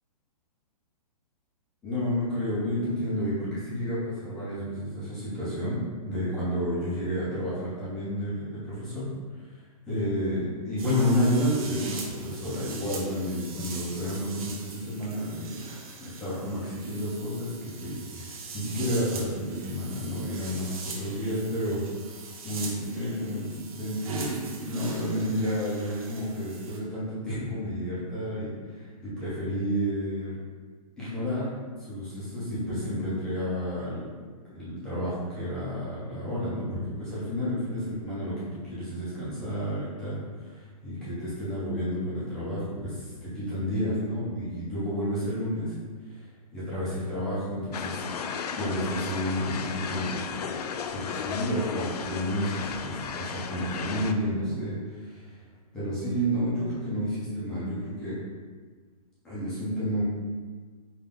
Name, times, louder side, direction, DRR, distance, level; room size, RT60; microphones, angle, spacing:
voice 1, 1.8-9.0 9.4-9.6 9.9-15.7 16.0-21.8 22.4-30.4 31.0-31.5 31.8-34.1 34.4-45.7 46.1-46.2 46.5-48.0 48.6-50.5 50.9-55.4 55.7-58.2 59.2-60.0, equal, 5° left, -10 dB, 0.4 m, -31 dB
sound 1, 10.8-26.8, right 4 dB, 60° right, 0.8 m, -42 dB
sound 2, 47.7-54.1, left 6 dB, 80° left, 0.4 m, -34 dB
5.1 x 2.2 x 3.5 m, 1.5 s
hypercardioid pair, 175°, 20 cm